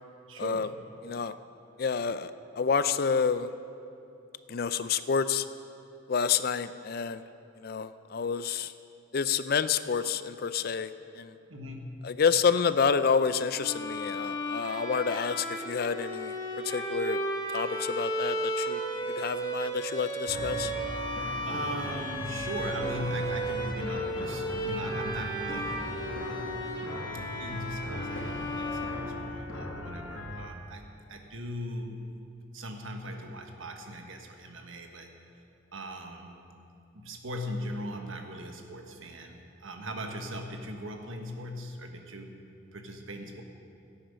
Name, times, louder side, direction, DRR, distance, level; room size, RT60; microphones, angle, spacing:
voice 1, 0.3-0.8 11.5-12.1 18.9-19.2 21.4-26.5 27.4-30.8 31.1-32.2 32.5-35.1 35.7-36.4 36.9-42.4 42.7-43.4, equal, 75° right, 3 dB, 1.3 m, -39 dB
voice 2, 1.0-1.3 1.8-3.5 4.5-5.5 6.1-7.2 7.6-8.7 9.1-11.3 12.0-16.4 16.6-17.2 17.5-18.8 19.1-20.7, left 6 dB, 50° left, 13 dB, 0.4 m, -28 dB
Bowed string instrument, 13.5-29.6, right 1 dB, 20° left, 1.7 m, -34 dB
sound 1, 20.3-30.5, left 1 dB, 90° left, 1.9 m, -39 dB
16.5 x 8.8 x 5.2 m, 2.8 s
head